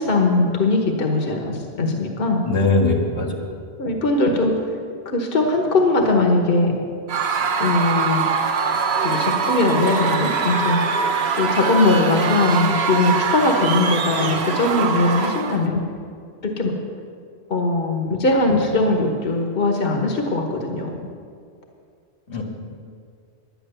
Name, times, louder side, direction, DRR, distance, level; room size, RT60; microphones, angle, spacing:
voice 1, 0.0-2.4 3.8-4.6 5.0-6.8 7.6-8.3 9.0-10.8 11.4-15.8 16.4-16.7 17.5-20.9, left 2 dB, 55° left, 2 dB, 1.3 m, -20 dB
voice 2, 2.4-3.5 22.3-22.4, left 3 dB, 85° left, 0 dB, 2.1 m, -20 dB
Screaming / Cheering / Crowd, 7.1-15.7, right 5 dB, 65° right, 1.1 m, -23 dB
10.5 x 10.5 x 6.7 m, 2.2 s
omnidirectional pair, 1.1 m